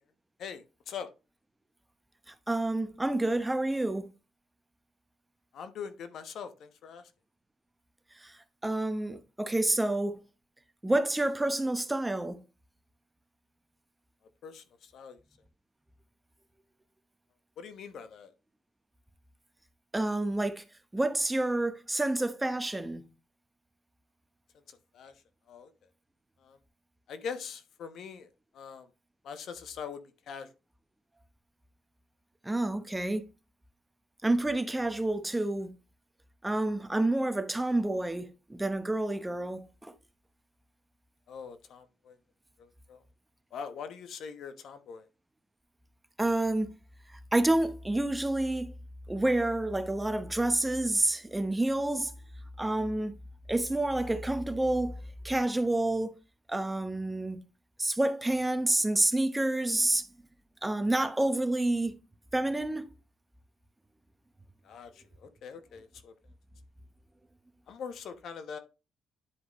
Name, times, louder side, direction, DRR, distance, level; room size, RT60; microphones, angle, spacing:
voice 1, 0.4-1.1 5.5-7.0 14.4-15.2 17.6-18.3 24.7-25.1 25.5-25.7 26.4-26.6 27.1-28.3 28.5-28.9 29.2-30.5 41.3-42.2 42.6-43.0 43.5-45.0 64.6-66.1 67.7-68.6, left 6 dB, 70° left, 1.0 m, -42 dB
voice 2, 2.5-4.1 8.2-8.4 8.6-10.2 10.8-12.4 19.9-20.6 20.9-23.1 32.4-33.2 34.2-35.7 36.4-39.9 46.2-46.7 47.3-48.7 49.1-52.1 52.6-53.1 53.5-55.0 55.2-56.2 56.5-57.4 57.8-60.0 60.6-61.9 62.3-62.9, right 1 dB, 10° right, 0.9 m, -28 dB
10.0 x 4.8 x 3.1 m
cardioid pair, 90°, 0 cm